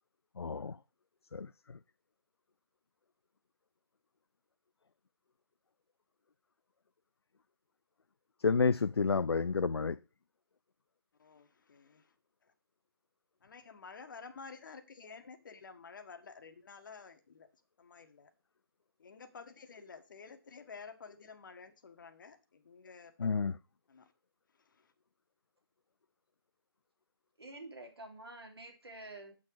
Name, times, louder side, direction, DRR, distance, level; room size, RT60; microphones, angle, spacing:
voice 1, 0.4-0.8 1.3-1.5 8.4-10.0 23.2-23.5, left 5 dB, 85° left, 0.4 m, -29 dB
voice 2, 11.2-12.1 13.4-17.5 17.8-18.3 19.0-23.3 23.9-24.1 24.5-24.9, left 5 dB, 55° left, 1.5 m, -51 dB
voice 3, 27.4-29.3, right 2 dB, 80° right, 3.4 m, -48 dB
8.6 x 6.3 x 4.7 m
figure-of-eight pair, 145°, 13 cm